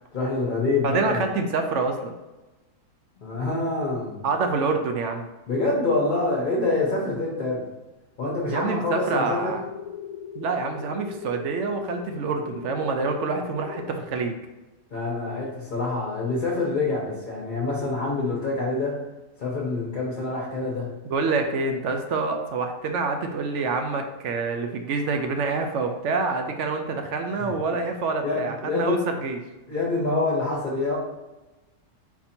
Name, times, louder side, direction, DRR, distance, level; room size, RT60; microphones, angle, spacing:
voice 1, 0.1-1.2 3.2-4.2 5.5-7.6 8.2-9.5 14.9-19.0 19.4-20.9 27.4-27.5 28.2-29.0 29.7-31.0, left 3 dB, 40° left, -6 dB, 0.9 m, -26 dB
voice 2, 0.8-2.1 4.2-5.3 8.5-9.6 10.4-14.4 21.1-29.4, right 4 dB, 65° right, 5 dB, 0.7 m, -26 dB
sound 1, 8.9-13.9, left 9 dB, 70° left, 1.0 m, -40 dB
4.3 x 2.7 x 4.3 m, 1.1 s
omnidirectional pair, 1.6 m